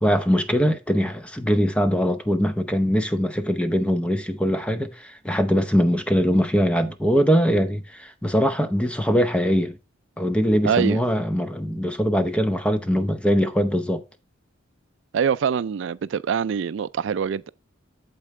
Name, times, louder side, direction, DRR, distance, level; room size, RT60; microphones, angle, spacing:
voice 1, 0.0-9.8 10.2-14.0, equal, 5° left, 0.8 m, -22 dB
voice 2, 10.6-11.0 15.1-17.5, right 7 dB, 65° right, 0.3 m, -24 dB
8.7 x 7.4 x 3.2 m
head